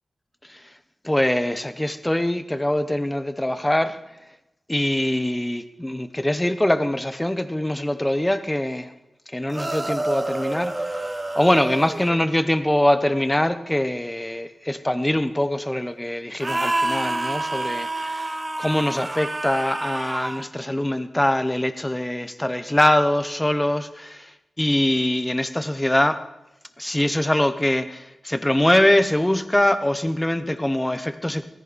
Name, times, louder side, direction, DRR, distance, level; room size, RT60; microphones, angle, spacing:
voice 1, 1.0-4.0 4.7-8.9 9.3-11.1 11.4-24.3 24.6-26.2 26.8-31.5, left 1 dB, 10° left, 11 dB, 1.0 m, -23 dB
sound 1, 9.5-12.2 16.4-20.5, right 2 dB, 25° right, 1.1 m, -28 dB
17.0 x 15.0 x 4.2 m, 0.95 s
wide cardioid pair, 105°, 0 cm